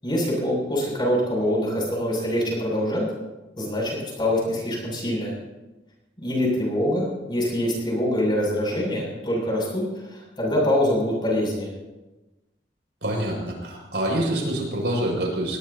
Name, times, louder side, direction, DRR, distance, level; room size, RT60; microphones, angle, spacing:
voice 1, 0.0-3.0 3.6-5.3 6.2-11.7, left 1 dB, 25° left, -2 dB, 7.5 m, -24 dB
voice 2, 13.0-15.6, right 1 dB, 80° right, -1 dB, 6.3 m, -26 dB
21.0 x 20.0 x 2.9 m, 1.1 s
head